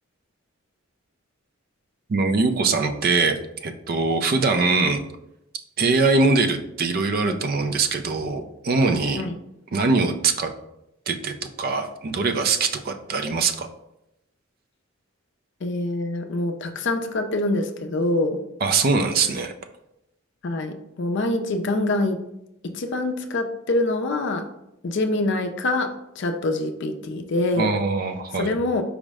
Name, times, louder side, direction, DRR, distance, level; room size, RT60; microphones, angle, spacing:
voice 1, 2.1-5.0 5.8-9.3 9.7-10.5 11.1-13.7 18.6-19.5 27.6-28.6, right 4 dB, 45° right, 7 dB, 0.4 m, -22 dB
voice 2, 15.6-18.4 20.4-22.2 22.6-24.5 24.8-25.9 26.2-27.7 28.4-28.8, left 2 dB, 55° left, 6 dB, 0.5 m, -25 dB
4.9 x 2.1 x 4.7 m, 0.85 s
head